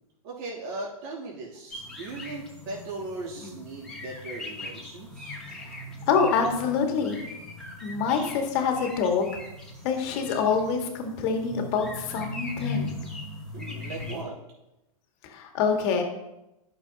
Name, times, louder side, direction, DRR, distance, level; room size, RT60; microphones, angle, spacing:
voice 1, 0.2-5.4 13.5-14.4, right 2 dB, 50° right, -4 dB, 2.8 m, -38 dB
sound 1, 1.7-14.2, left 2 dB, 5° left, 2.5 m, -39 dB
voice 2, 6.1-7.2 7.8-9.4 9.8-12.9 15.2-16.0, left 5 dB, 45° left, 3 dB, 1.8 m, -26 dB
12.0 x 6.3 x 2.8 m, 0.91 s
hypercardioid pair, 105°, 19 cm